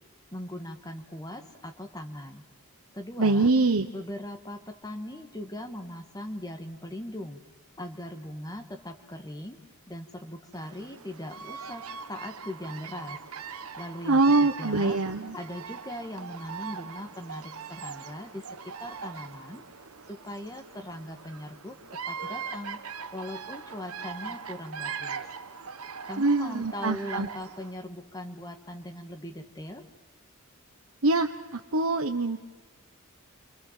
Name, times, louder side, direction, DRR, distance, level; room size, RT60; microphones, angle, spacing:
voice 1, 0.3-2.4 2.9-3.5 3.9-7.4 7.8-9.6 9.9-11.8 12.1-13.2 13.8-15.0 15.3-18.4 18.8-19.6 20.1-21.8 22.0-22.8 23.1-25.3 26.1-29.8, left 1 dB, 20° left, 5 dB, 1.6 m, -39 dB
voice 2, 3.2-3.9 14.0-15.4 26.2-27.3 31.0-32.4, right 3 dB, 70° right, 4 dB, 1.2 m, -24 dB
Bird vocalization bird call bird song, 10.5-27.8, right 6 dB, 90° right, 1.3 m, -41 dB
29.5 x 25.0 x 7.5 m, 1.2 s
head